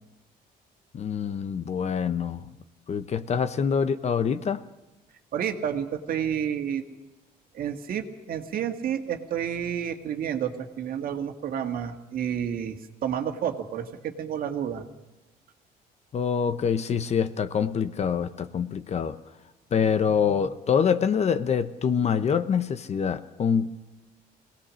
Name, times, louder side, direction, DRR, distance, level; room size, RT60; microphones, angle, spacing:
voice 1, 0.9-2.5 2.9-4.6 16.1-19.2 19.7-23.8, left 7 dB, 40° left, 13 dB, 0.9 m, -25 dB
voice 2, 5.3-6.8 7.5-14.8, right 8 dB, 60° right, 6 dB, 1.8 m, -30 dB
22.0 x 18.5 x 6.4 m, 1.0 s
cardioid pair, 110°, 17 cm